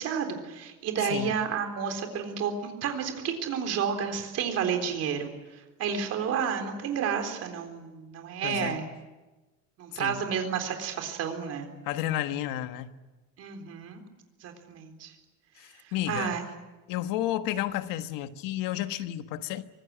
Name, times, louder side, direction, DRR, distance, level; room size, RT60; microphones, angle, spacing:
voice 1, 0.0-8.9 9.8-11.7 13.4-14.0 14.4-15.1 15.8-16.4, right 7 dB, 50° right, 3.9 m, -31 dB
voice 2, 8.4-8.8 9.9-10.2 11.8-12.9 15.6-16.4 16.9-19.7, left 13 dB, 80° left, 1.4 m, -32 dB
24.5 x 19.5 x 10.0 m
cardioid pair, 170°, 33 cm